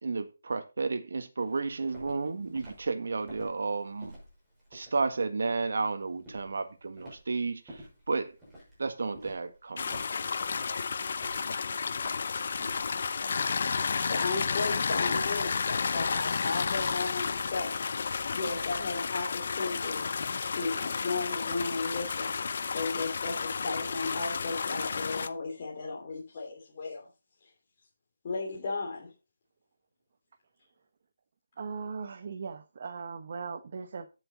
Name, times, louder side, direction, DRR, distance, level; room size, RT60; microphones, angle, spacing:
voice 1, 0.0-4.2 4.7-8.3 8.8-10.0, right 4 dB, 70° right, 1.6 m, -32 dB
Walk footsteps, 1.4-14.2, equal, 5° right, 5.9 m, -51 dB
sound 1, 9.8-25.3, left 5 dB, 50° left, 0.7 m, -32 dB
voice 2, 14.0-17.7 18.3-20.0 20.5-22.5 22.7-27.1 27.4-27.5 28.2-29.1, left 3 dB, 35° left, 3.0 m, -35 dB
voice 3, 31.6-34.2, right 5 dB, 45° right, 1.1 m, -39 dB
9.6 x 7.8 x 4.1 m
hypercardioid pair, 165°, 0 cm